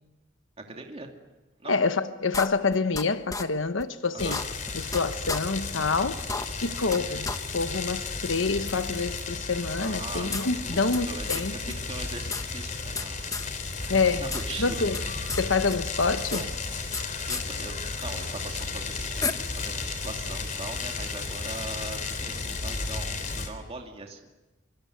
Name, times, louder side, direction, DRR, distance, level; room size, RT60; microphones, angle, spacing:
voice 1, 0.6-1.1 1.6-1.8 4.1-4.4 9.8-14.9 16.3-16.5 17.3-19.3 19.5-24.3, right 2 dB, 30° right, 2.7 m, -41 dB
voice 2, 1.7-4.4 4.7-6.2 6.6-11.5 13.9-14.3 14.6-15.0 15.3-16.4, left 4 dB, 75° left, 1.1 m, -27 dB
sound 1, 2.3-3.0 3.3-3.4 3.8-3.9 4.2-5.0 5.3-5.4 5.8-5.9 6.2-7.0 7.2-7.4 7.7-7.8 8.7-8.8 9.8-11.0 11.3-11.4 11.7-11.8 12.0-13.1 13.3-13.5 13.8-14.4 14.7-15.4 15.7-17.0 17.3-17.4 18.6-18.7 19.2-19.3, left 4 dB, 20° left, 1.3 m, -32 dB
sound 2, 4.2-23.5, left 4 dB, 40° left, 3.7 m, -34 dB
25.0 x 24.5 x 9.4 m
head